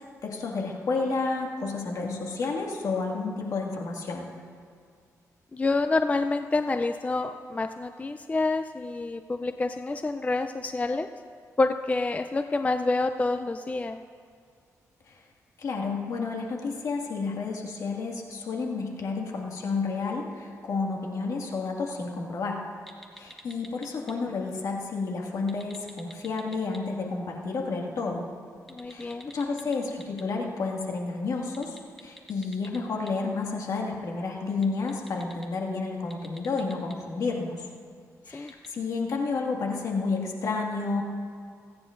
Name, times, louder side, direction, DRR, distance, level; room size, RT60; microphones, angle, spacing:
voice 1, 0.0-4.3 15.1-15.2 15.6-22.6 23.2-28.3 28.9-37.7 38.3-41.0, left 4 dB, 65° left, 0 dB, 2.0 m, -31 dB
voice 2, 5.5-11.1 11.6-14.0 28.7-29.3 38.3-38.5, left 3 dB, 25° left, 9 dB, 0.4 m, -28 dB
sound 1, 22.9-24.1 25.4-26.8 28.6-30.2 31.4-33.1 34.5-35.4 36.0-36.9 38.5-38.7, equal, 5° left, 1.4 m, -47 dB
28.5 x 9.7 x 2.6 m, 2.3 s
cardioid pair, 80°, 6 cm